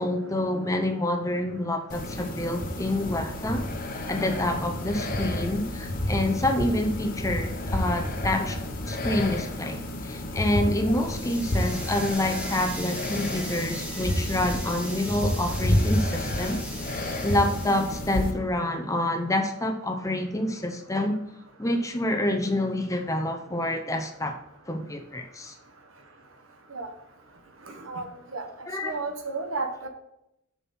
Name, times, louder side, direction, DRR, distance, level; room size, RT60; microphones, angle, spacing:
voice 1, 0.0-3.7 4.1-8.6 8.9-16.6 16.9-21.2 21.6-24.4 24.7-25.5 28.7-29.0, left 1 dB, 15° left, 5 dB, 0.7 m, -27 dB
sound 1, 1.9-18.3, left 1 dB, 40° left, 1.0 m, -30 dB
sound 2, 10.9-18.1, equal, 5° right, 1.3 m, -39 dB
voice 2, 27.7-28.4 28.8-29.9, right 3 dB, 70° right, 5 dB, 1.3 m, -33 dB
6.8 x 6.1 x 4.3 m, 0.80 s
head